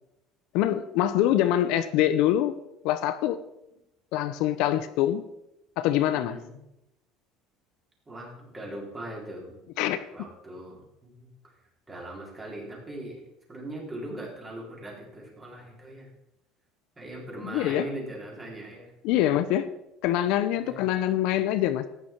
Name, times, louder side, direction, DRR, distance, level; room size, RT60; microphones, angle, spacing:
voice 1, 0.5-2.5 2.8-3.4 4.1-5.2 5.8-6.3 9.8-10.0 17.4-17.9 19.0-19.7 20.0-21.9, left 12 dB, 70° left, 12 dB, 0.7 m, -24 dB
voice 2, 6.1-6.6 8.1-9.6 10.1-11.5 11.9-13.2 13.5-16.1 17.0-18.9 20.6-20.8, right 1 dB, 15° right, -3 dB, 4.0 m, -40 dB
14.0 x 9.5 x 4.6 m, 0.87 s
cardioid pair, 150°, 0 cm